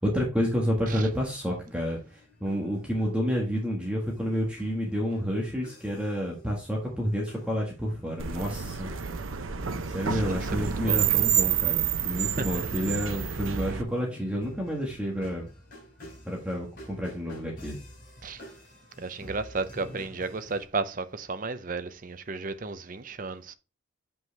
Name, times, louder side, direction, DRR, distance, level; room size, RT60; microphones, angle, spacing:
voice 1, 0.0-8.9 9.9-15.5 16.2-17.8, equal, 5° right, 1.6 m, -29 dB
sound 1, 0.8-20.6, equal, 45° left, 3.7 m, -50 dB
sound 2, 8.2-13.8, right 8 dB, 90° right, 0.8 m, -28 dB
voice 2, 10.1-11.0 12.1-12.7 18.2-18.4 19.0-23.5, right 3 dB, 40° right, 0.6 m, -34 dB
7.6 x 5.4 x 3.4 m
head